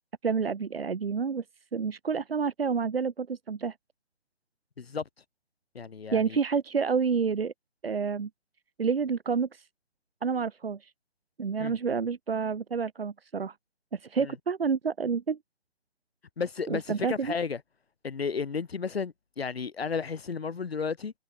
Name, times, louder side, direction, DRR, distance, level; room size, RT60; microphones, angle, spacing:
voice 1, 0.2-1.4 1.7-3.7 6.1-7.5 7.8-8.3 8.8-9.7 10.2-10.9 11.4-13.6 13.9-15.4 16.7-17.4, right 5 dB, 60° right, 5.9 m, -29 dB
voice 2, 5.8-6.4 11.6-11.7 14.2-14.3 16.4-17.6 18.0-21.1, left 5 dB, 60° left, 3.6 m, -33 dB
hypercardioid pair, 175°, 34 cm